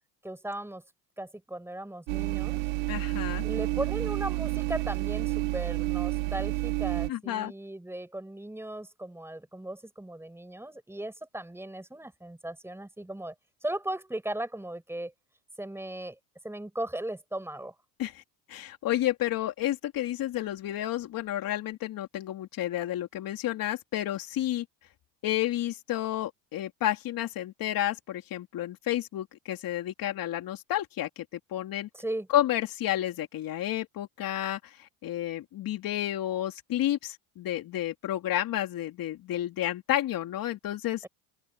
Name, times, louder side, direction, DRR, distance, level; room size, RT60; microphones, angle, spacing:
voice 1, 0.2-0.8 1.2-2.6 3.4-13.3 13.6-15.1 15.6-16.2 16.4-17.8 31.9-32.3, right 1 dB, 5° right, 7.4 m, -37 dB
sound 1, 2.1-7.1, right 22 dB, 80° right, 1.5 m, -30 dB
voice 2, 2.9-3.4 7.1-7.5 18.0-18.2 18.5-24.6 25.2-31.9 32.3-41.1, left 13 dB, 55° left, 3.3 m, -31 dB
open air
supercardioid pair, 105°, 42 cm